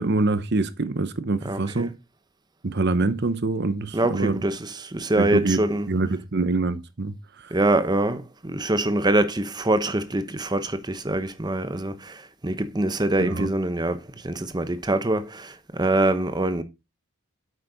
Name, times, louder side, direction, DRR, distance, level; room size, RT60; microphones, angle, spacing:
voice 1, 0.0-1.9 2.6-4.4 5.2-5.6 5.9-7.1 13.2-13.5, right 3 dB, 50° right, 0.8 m, -25 dB
voice 2, 1.4-1.9 3.9-5.9 7.5-16.6, right 1 dB, 20° right, 0.9 m, -24 dB
9.1 x 8.4 x 4.0 m
head